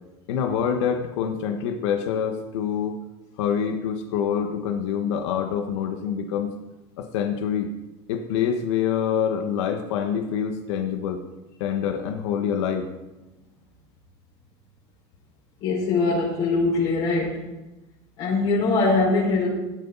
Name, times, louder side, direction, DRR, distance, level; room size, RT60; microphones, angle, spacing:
voice 1, 0.3-2.9 3.4-6.5 7.0-7.7 8.1-11.2 11.6-12.9, left 8 dB, 85° left, 5 dB, 1.4 m, -26 dB
voice 2, 15.6-17.4 18.2-19.5, left 3 dB, 55° left, -7 dB, 5.5 m, -22 dB
16.5 x 13.0 x 4.1 m, 1.0 s
supercardioid pair, 135°, 14 cm